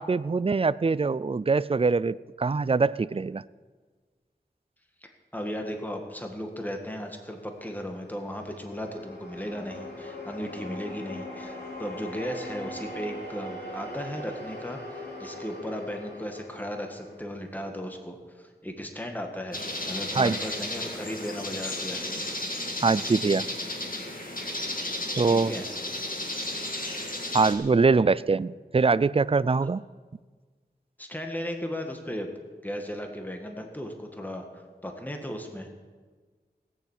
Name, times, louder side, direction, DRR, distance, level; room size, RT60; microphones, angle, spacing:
voice 1, 0.0-3.4 20.2-20.4 22.8-23.5 25.2-25.5 27.3-29.8, right 4 dB, 35° right, 19 dB, 0.4 m, -23 dB
voice 2, 5.0-22.2 25.3-25.6 31.0-32.3 32.6-34.4 34.8-35.7, equal, 10° left, 3 dB, 1.8 m, -36 dB
sound 1, 7.4-17.8, left 1 dB, 75° left, 3.2 m, -41 dB
sound 2, 19.5-27.5, left 1 dB, 55° left, 2.0 m, -33 dB
18.0 x 7.3 x 8.2 m, 1.5 s
wide cardioid pair, 45°, 17 cm